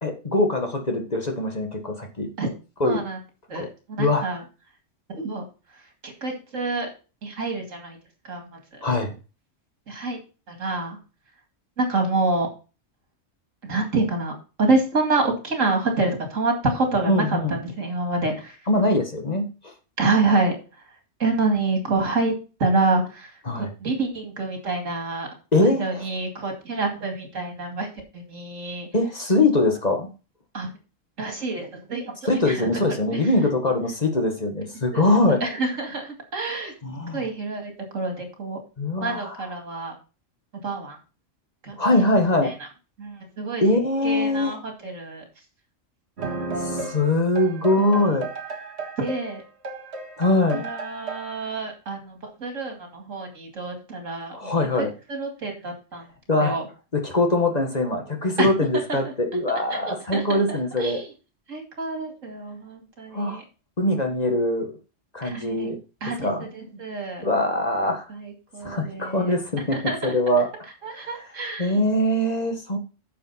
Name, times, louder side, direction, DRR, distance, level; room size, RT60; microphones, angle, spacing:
voice 1, 0.0-2.3 2.8-3.0 3.5-3.7 4.0-4.3 8.8-9.1 17.1-17.6 18.7-19.7 23.5-23.7 25.5-26.0 28.9-30.1 32.3-35.4 36.8-37.3 38.8-39.4 41.8-42.5 43.6-44.6 46.6-48.3 50.2-50.7 54.3-54.9 56.3-56.6 56.9-61.0 63.1-63.4 63.8-64.8 65.1-65.8 66.2-66.5 67.2-68.1 68.6-70.5 70.9-71.1 71.6-72.8, left 2 dB, 35° left, 4 dB, 1.5 m, -22 dB
voice 2, 2.8-3.2 3.5-4.4 5.1-5.4 6.0-6.9 7.2-8.0 8.2-8.8 9.9-10.2 10.5-11.0 11.8-12.5 13.6-14.3 14.6-18.6 20.0-20.5 21.2-22.3 22.6-25.3 25.6-27.9 28.1-28.9 30.5-30.7 31.2-32.7 33.1-33.3 34.9-36.7 37.1-38.6 39.0-39.9 40.6-41.0 41.6-41.8 42.4-42.7 43.0-43.6 44.0-45.2 47.8-48.1 49.0-49.4 50.5-54.5 54.8-56.0 56.4-56.7 58.4-58.5 58.9-59.1 59.7-61.1 61.5-63.4 65.2-65.7 66.0-67.2 68.1-69.3 69.7-70.1 70.8-71.8, right 3 dB, 80° right, 3 dB, 2.6 m, -27 dB
sound 1, 46.2-51.5, right 3 dB, 60° right, 2.0 m, -34 dB
9.4 x 6.8 x 4.1 m, 0.32 s
omnidirectional pair, 1.3 m